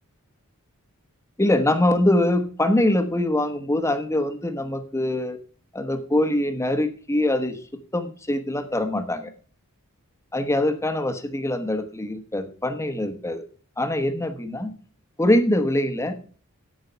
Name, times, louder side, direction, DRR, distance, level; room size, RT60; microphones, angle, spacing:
voice 1, 1.4-5.4 5.7-7.6 7.9-9.3 10.3-13.4 13.8-14.7 15.2-16.2, left 1 dB, 15° left, 7 dB, 1.2 m, -23 dB
9.4 x 8.6 x 5.6 m, 0.41 s
head